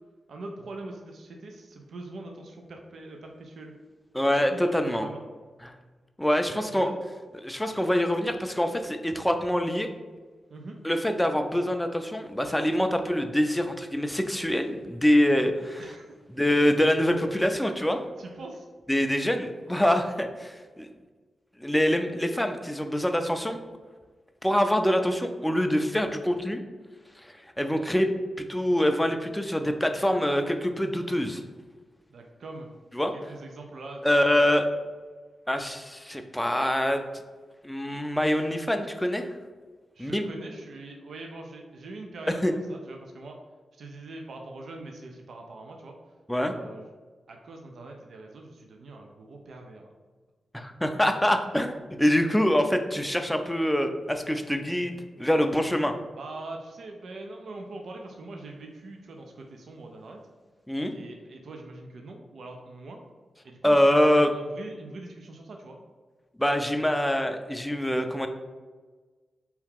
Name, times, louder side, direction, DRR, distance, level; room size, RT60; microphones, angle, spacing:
voice 1, 0.3-3.7 4.2-5.2 6.5-6.9 10.5-10.8 15.8-16.1 18.2-18.7 32.1-34.0 34.3-34.4 39.9-43.4 43.7-45.9 46.4-46.9 47.3-49.9 56.2-60.2 60.9-63.0 63.4-65.8, right 2 dB, 70° right, 2 dB, 0.4 m, -42 dB
voice 2, 4.1-5.1 5.6-5.7 6.2-6.9 7.4-9.9 10.8-15.8 16.3-18.0 18.9-20.9 21.6-23.6 24.4-26.6 27.2-31.4 32.9-33.1 34.0-34.6 35.5-37.0 37.6-39.3 40.0-40.3 42.4-42.5 46.3-46.5 50.5-55.9 60.7-60.9 63.6-64.3 66.4-68.3, equal, 10° left, 6 dB, 0.4 m, -25 dB
2.8 x 2.3 x 3.5 m, 1.3 s
supercardioid pair, 50°, 0 cm